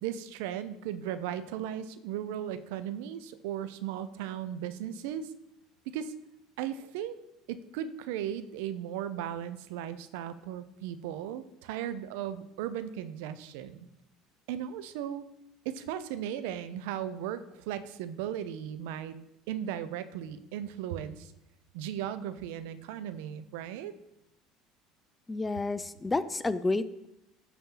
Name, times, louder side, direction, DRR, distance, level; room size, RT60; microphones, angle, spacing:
voice 1, 0.0-5.3 5.9-6.1 6.6-7.2 7.5-13.9 14.5-15.2 15.6-19.2 19.5-21.3 21.7-24.0, right 10 dB, 85° right, 13 dB, 0.5 m, -36 dB
voice 2, 25.3-27.1, left 3 dB, 15° left, 14 dB, 0.4 m, -30 dB
12.5 x 4.3 x 3.9 m, 0.85 s
supercardioid pair, 105°, 0 cm